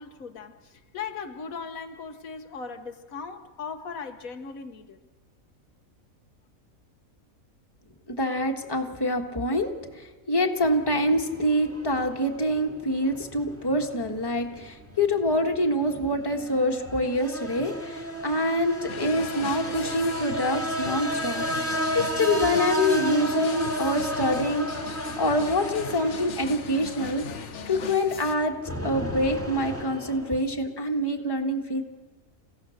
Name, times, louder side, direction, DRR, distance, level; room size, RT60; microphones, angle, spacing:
voice 1, 0.0-5.0, left 5 dB, 80° left, 1.5 m, -38 dB
voice 2, 8.1-24.7 25.2-27.2 27.6-28.5 28.8-31.8, left 1 dB, 15° left, 1.6 m, -26 dB
sound 1, 10.6-30.4, right 1 dB, 10° right, 2.0 m, -33 dB
sound 2, 18.9-28.4, left 7 dB, 60° left, 1.1 m, -38 dB
29.0 x 16.0 x 6.5 m
omnidirectional pair, 1.5 m